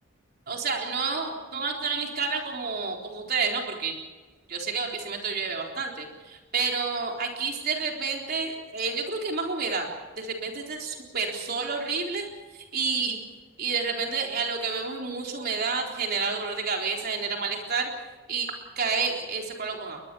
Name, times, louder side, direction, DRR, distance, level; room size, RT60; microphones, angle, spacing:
voice 1, 0.5-4.0 4.5-9.9 10.2-12.3 12.5-13.2 13.6-17.9 18.3-20.0, right 4 dB, 50° right, 1 dB, 4.0 m, -29 dB
22.0 x 21.0 x 7.1 m, 1.3 s
head